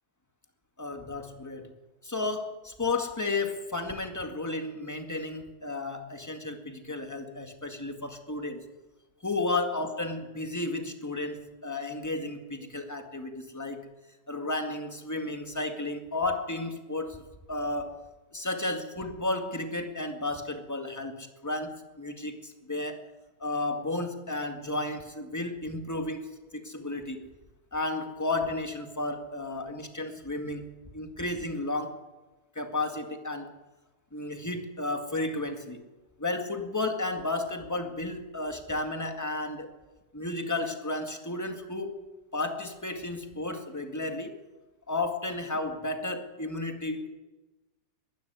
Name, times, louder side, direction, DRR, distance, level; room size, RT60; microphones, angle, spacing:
voice 1, 0.8-1.7 2.0-8.7 9.2-13.9 14.3-17.9 18.3-23.0 23.4-26.3 26.5-27.2 27.7-32.0 32.5-33.5 34.1-35.9 36.2-39.7 40.1-44.3 44.9-47.1, left 2 dB, 10° left, 5 dB, 1.7 m, -33 dB
21.5 x 12.5 x 9.5 m, 1.2 s
omnidirectional pair, 2.3 m